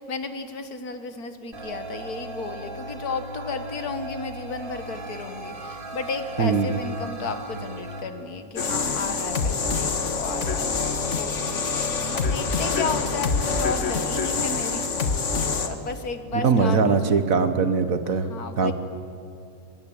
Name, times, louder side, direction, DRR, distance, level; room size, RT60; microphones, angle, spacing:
voice 1, 0.0-14.9 15.6-17.2 18.1-18.7, left 4 dB, 75° left, 8 dB, 2.1 m, -33 dB
sound 1, 1.5-8.0, right 2 dB, 35° right, 2.4 m, -37 dB
voice 2, 6.4-6.7 16.4-18.3 18.6-18.7, right 5 dB, 60° right, 10 dB, 1.7 m, -21 dB
sound 2, 8.6-15.7, left 4 dB, 50° left, 1.8 m, -25 dB
23.5 x 22.5 x 8.9 m, 2.6 s
omnidirectional pair, 1.6 m